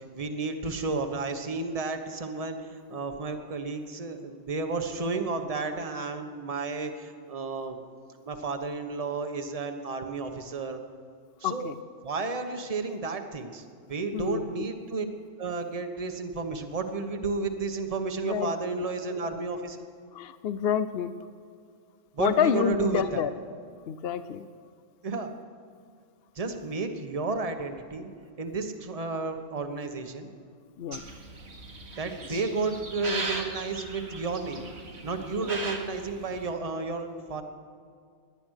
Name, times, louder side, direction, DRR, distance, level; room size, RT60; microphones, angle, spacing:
voice 1, 0.0-7.8 8.3-10.8 11.4-11.7 12.0-15.1 15.4-19.8 22.1-23.2 25.0-25.3 26.3-28.1 28.4-30.3 32.0-34.7 35.0-37.4, right 4 dB, 30° right, 6 dB, 1.1 m, -32 dB
voice 2, 11.4-11.8 14.1-14.7 18.2-18.8 20.1-21.1 22.2-23.3 23.9-24.4 30.8-31.0 32.3-32.4 35.4-35.5, left 8 dB, 60° left, 12 dB, 0.8 m, -28 dB
sound 1, 30.9-36.5, right 3 dB, 60° right, 1.7 m, -38 dB
18.5 x 11.5 x 6.4 m, 2.2 s
omnidirectional pair, 1.2 m